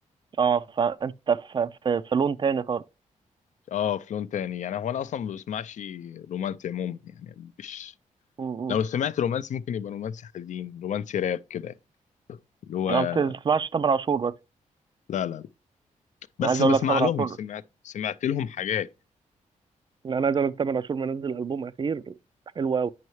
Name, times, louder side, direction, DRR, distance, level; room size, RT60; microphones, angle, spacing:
voice 1, 0.4-2.8 8.4-8.8 12.9-14.3 16.4-17.3 20.0-22.1 22.6-22.9, right 6 dB, 35° right, 0.3 m, -25 dB
voice 2, 3.7-7.9 8.7-11.7 12.3-12.4 12.7-13.3 15.1-15.5 16.4-18.9, left 9 dB, 65° left, 0.4 m, -30 dB
9.3 x 5.5 x 3.1 m
cardioid pair, 95°, 13 cm